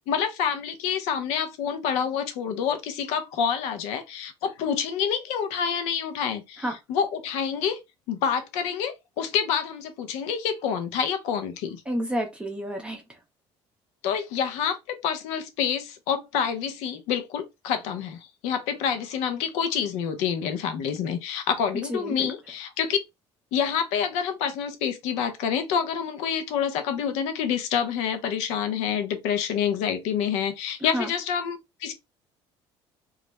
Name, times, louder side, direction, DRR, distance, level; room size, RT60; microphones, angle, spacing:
voice 1, 0.1-6.6 6.9-7.8 8.1-11.8 14.0-23.0 23.5-31.9, left 7 dB, 85° left, 0.6 m, -27 dB
voice 2, 11.9-13.2 21.8-22.3 30.8-31.1, equal, 10° right, 0.6 m, -30 dB
2.3 x 2.0 x 2.9 m
cardioid pair, 125°, 11 cm